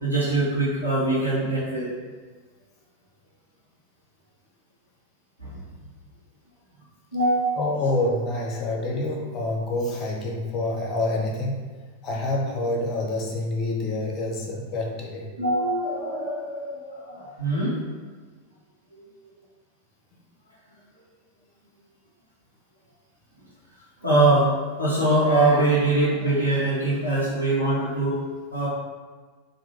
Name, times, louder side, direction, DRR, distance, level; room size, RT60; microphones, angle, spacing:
voice 1, 0.0-1.9 5.4-5.6 7.1-7.6 15.4-17.8 24.0-24.5 24.8-28.2 28.5-28.7, right 2 dB, 85° right, -10 dB, 1.1 m, -23 dB
voice 2, 7.6-11.7 12.0-15.3, left 2 dB, 35° left, -1 dB, 0.8 m, -27 dB
3.7 x 2.7 x 4.4 m, 1.4 s
figure-of-eight pair, 90°, 0 cm